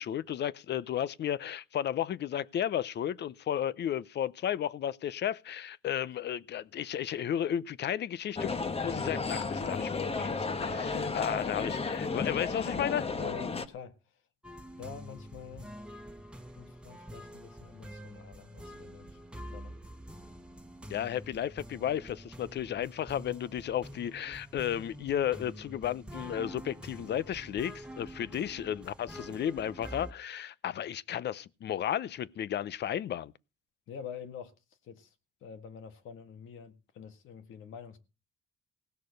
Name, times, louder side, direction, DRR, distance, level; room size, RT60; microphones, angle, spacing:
voice 1, 0.0-8.5 8.8-13.1 20.9-33.3, left 10 dB, 60° left, 0.7 m, -33 dB
sound 1, 8.4-13.7, left 4 dB, 30° left, 1.3 m, -33 dB
voice 2, 13.2-14.2 14.8-15.7 16.6-19.2 19.5-19.8 28.2-28.3 33.9-34.5 34.8-35.1 35.4-38.0, left 7 dB, 85° left, 1.9 m, -46 dB
sound 2, 14.4-30.1, equal, 5° right, 1.5 m, -47 dB
17.5 x 6.5 x 6.5 m
cardioid pair, 90°, 20 cm